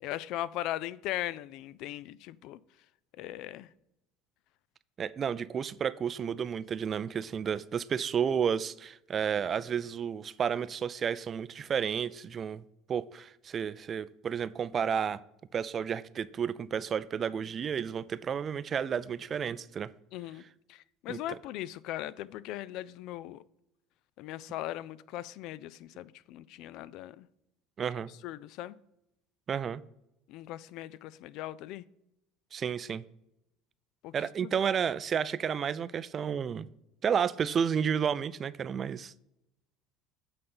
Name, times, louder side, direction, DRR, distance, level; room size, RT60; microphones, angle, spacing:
voice 1, 0.0-2.6 3.2-3.7 20.1-20.4 20.7-23.4 24.2-27.3 28.2-28.8 30.3-31.8 34.0-34.1 34.4-34.5, left 14 dB, 65° left, 0.3 m, -39 dB
voice 2, 5.0-12.6 12.9-15.2 15.5-19.9 21.1-21.4 27.8-28.1 29.5-29.8 32.5-33.0 34.1-36.7 37.0-39.1, right 7 dB, 35° right, 0.4 m, -31 dB
8.6 x 4.0 x 5.4 m
supercardioid pair, 100°, 0 cm